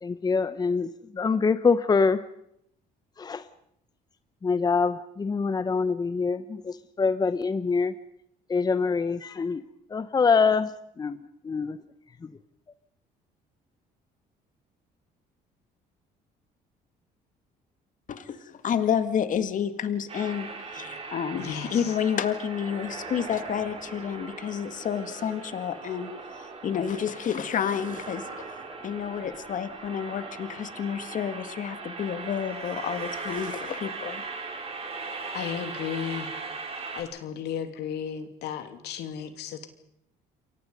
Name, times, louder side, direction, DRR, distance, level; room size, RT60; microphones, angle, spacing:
voice 1, 0.0-2.2 3.2-3.5 4.4-7.9 8.5-9.6 9.9-10.7 11.0-11.2 11.4-11.8 12.2-12.3, left 5 dB, 25° left, 13 dB, 0.8 m, -25 dB
voice 2, 18.1-26.1 26.6-28.5 28.8-34.4, left 8 dB, 50° left, 10 dB, 2.0 m, -30 dB
sound 1, 20.1-37.0, right 4 dB, 35° right, 5.1 m, -39 dB
voice 3, 21.4-22.0 35.3-36.3 36.9-39.7, left 8 dB, 75° left, 8 dB, 2.8 m, -34 dB
28.5 x 23.0 x 5.4 m, 0.74 s
cardioid pair, 110°, 17 cm